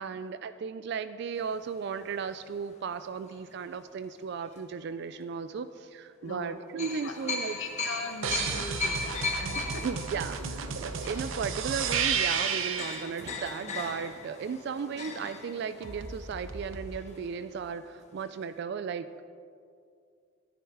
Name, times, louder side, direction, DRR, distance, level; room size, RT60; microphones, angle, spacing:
voice 1, 0.0-7.6 9.8-19.2, right 6 dB, 55° right, 13 dB, 0.3 m, -35 dB
sound 1, 1.4-3.8 4.4-4.6 6.8-17.5 17.8-17.9 18.2-18.4, left 3 dB, 35° left, 1.2 m, -38 dB
voice 2, 6.2-6.6 7.0-9.9 11.4-11.6, left 3 dB, 70° left, 7 dB, 1.0 m, -41 dB
sound 2, 8.2-13.1 15.8-16.9, right 6 dB, 75° right, 0.8 m, -32 dB
10.5 x 10.0 x 4.7 m, 2.3 s
head